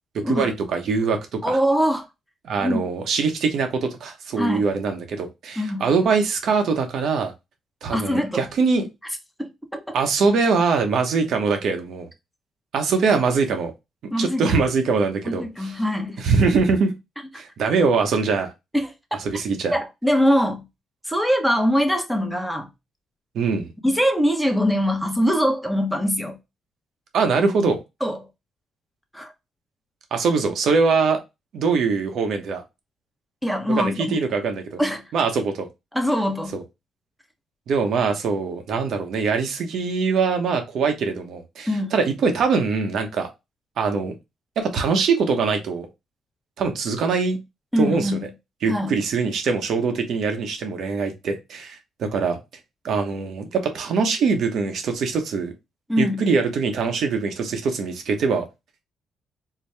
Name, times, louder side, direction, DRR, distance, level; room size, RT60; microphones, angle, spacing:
voice 1, 0.3-1.6 2.4-7.3 7.8-8.9 9.9-12.1 12.7-13.7 14.2-15.8 16.2-16.9 17.4-18.5 19.2-19.7 23.3-23.7 27.1-27.8 30.1-31.2 31.5-32.6 33.7-34.8 35.1-35.7 36.5-36.6 37.7-43.3 43.8-44.1 44.6-45.9 46.6-47.4 47.8-48.2 48.6-52.4 52.8-55.5 56.0-58.4, right 5 dB, 70° right, 1.0 m, -22 dB
voice 2, 1.4-2.1 2.6-2.8 4.4-4.7 5.6-5.9 7.9-8.4 9.4-10.0 14.1-14.4 15.2-16.2 18.7-18.9 19.7-20.6 21.1-22.7 23.8-26.4 28.0-28.3 29.1-29.3 33.4-34.2 34.8-35.1 35.9-36.6 41.7-41.9 47.7-48.3 48.7-49.0 55.9-56.3, equal, ahead, 0.9 m, -23 dB
4.6 x 2.2 x 3.4 m
cardioid pair, 90°, 0 cm